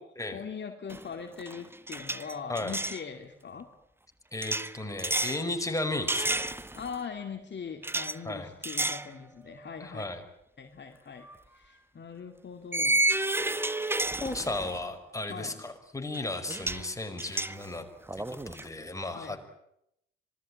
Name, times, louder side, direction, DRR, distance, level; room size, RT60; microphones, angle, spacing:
voice 1, 0.3-3.7 6.7-10.0 10.6-13.0 15.3-15.5 19.1-19.4, left 6 dB, 35° left, 4 dB, 2.5 m, -41 dB
sound 1, 0.9-1.1 1.4-3.0 4.4-5.4 6.1-7.0 7.8-8.2 8.6-9.1 9.5-9.7 11.2-11.4 12.7-14.8 16.1-16.2 16.5-16.9 17.2-18.7, right 2 dB, 5° right, 1.2 m, -31 dB
voice 2, 4.3-6.6 8.2-8.5 9.8-10.2 13.9-17.9 18.2-19.4, left 2 dB, 10° left, 5 dB, 5.4 m, -35 dB
26.5 x 20.5 x 8.8 m, 0.78 s
hypercardioid pair, 50°, 30 cm